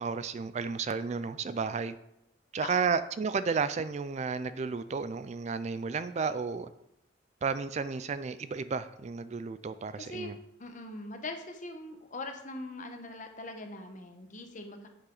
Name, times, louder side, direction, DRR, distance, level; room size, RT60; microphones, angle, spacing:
voice 1, 0.0-2.0 2.5-6.7 7.4-10.4, right 5 dB, 35° right, 13 dB, 0.3 m, -32 dB
voice 2, 10.0-10.3 10.6-14.9, left 2 dB, 40° left, 5 dB, 1.2 m, -41 dB
8.7 x 8.3 x 3.9 m, 0.81 s
head